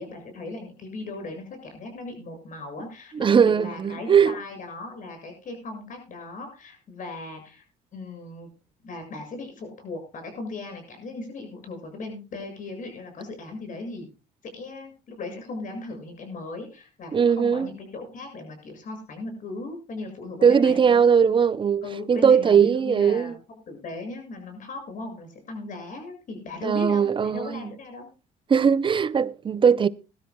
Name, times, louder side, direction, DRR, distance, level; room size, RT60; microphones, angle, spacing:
voice 1, 0.0-7.6 7.9-8.5 8.8-14.1 14.5-21.0 21.8-23.4 23.7-28.1, left 3 dB, 50° left, 6.9 m, -38 dB
voice 2, 3.1-4.4 17.1-17.7 20.4-23.4 26.6-27.6 28.5-29.9, right 7 dB, 30° right, 0.6 m, -19 dB
21.0 x 12.5 x 2.3 m
cardioid pair, 110°, 17 cm